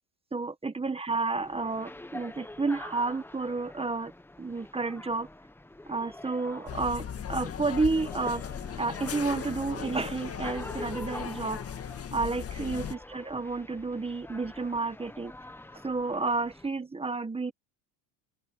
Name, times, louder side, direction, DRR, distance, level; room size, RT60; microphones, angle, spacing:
voice 1, 0.3-4.1 4.4-5.3 5.9-8.4 8.8-11.6 12.1-15.3 15.8-17.5, right 3 dB, 15° right, 1.5 m, -31 dB
sound 1, 1.3-16.7, left 1 dB, 5° left, 1.2 m, -46 dB
sound 2, 6.7-12.9, left 8 dB, 35° left, 1.9 m, -38 dB
open air
cardioid pair, 110°, 42 cm